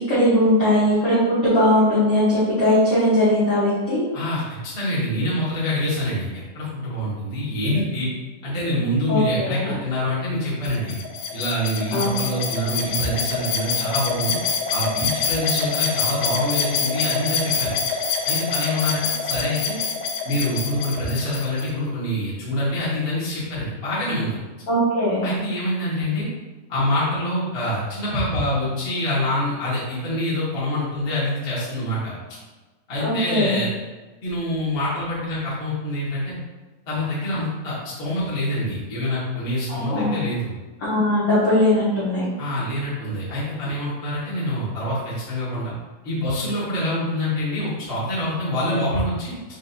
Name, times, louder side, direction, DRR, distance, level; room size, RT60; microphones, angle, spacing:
voice 1, 0.0-4.0 9.1-9.8 11.9-12.2 24.7-25.2 33.0-33.6 39.7-40.1 40.8-42.2, left 1 dB, 70° left, -11 dB, 1.1 m, -19 dB
voice 2, 4.7-8.1 8.4-11.0 11.3-14.4 14.7-17.7 18.3-19.8 20.2-24.4 25.2-26.3 26.7-32.1 32.9-33.7 34.2-36.3 36.9-40.5 42.4-45.7 46.0-49.4, left 1 dB, 50° left, -9 dB, 0.7 m, -25 dB
sound 1, 10.6-21.7, left 5 dB, 90° left, 2.3 m, -26 dB
6.2 x 2.7 x 2.7 m, 1.2 s
omnidirectional pair, 3.7 m